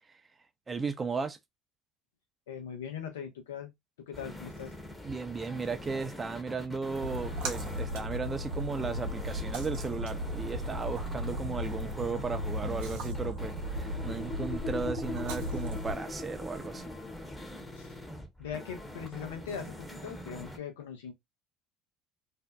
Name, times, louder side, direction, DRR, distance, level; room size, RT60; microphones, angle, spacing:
voice 1, 0.7-1.4 5.0-16.9, right 4 dB, 25° right, 0.5 m, -35 dB
voice 2, 2.5-3.7 4.0-4.7 17.8-17.9 18.4-21.1, left 7 dB, 80° left, 0.6 m, -40 dB
sound 1, 4.1-20.6, left 1 dB, 10° left, 0.8 m, -44 dB
Splash splatter, 7.0-15.9, equal, 75° right, 0.7 m, -36 dB
sound 2, 13.0-17.6, left 3 dB, 40° left, 0.5 m, -41 dB
2.6 x 2.1 x 2.2 m
hypercardioid pair, 65°, 0 cm